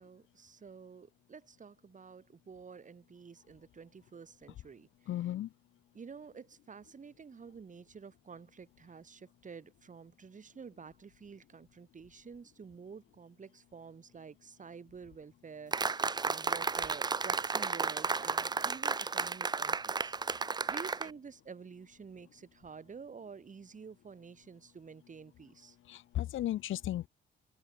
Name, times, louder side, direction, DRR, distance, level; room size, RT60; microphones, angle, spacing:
voice 1, 0.0-5.3 5.9-20.1 20.7-25.8, right 5 dB, 40° right, 6.4 m, -50 dB
voice 2, 5.1-5.5 25.9-27.1, left 13 dB, 80° left, 4.3 m, -35 dB
sound 1, 15.7-21.1, right 4 dB, 20° right, 0.6 m, -33 dB
open air
cardioid pair, 90°, 20 cm